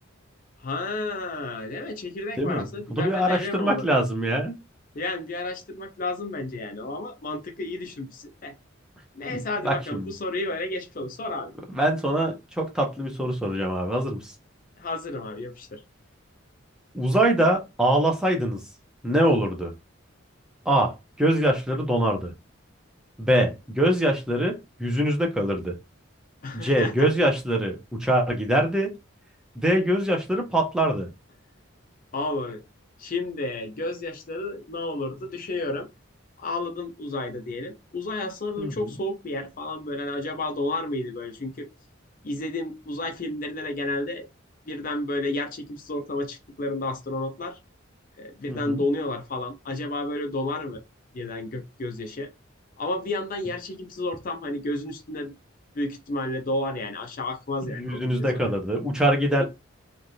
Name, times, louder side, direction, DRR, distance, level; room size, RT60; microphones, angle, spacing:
voice 1, 0.6-4.0 4.9-8.5 9.1-11.5 14.8-15.8 26.4-27.1 32.1-32.6 33.0-35.9 36.4-41.7 42.2-44.3 44.7-47.6 48.2-50.8 51.1-52.3 52.8-55.3 55.7-58.3 59.4-59.5, left 2 dB, 40° left, 0.5 m, -31 dB
voice 2, 2.4-4.5 9.3-9.4 9.6-10.1 11.7-14.3 16.9-18.6 19.0-19.7 20.7-22.3 23.2-25.7 26.5-28.9 29.6-31.1 38.6-38.7 48.5-48.8 57.8-59.4, right 1 dB, 5° right, 0.6 m, -23 dB
3.2 x 2.5 x 2.6 m
head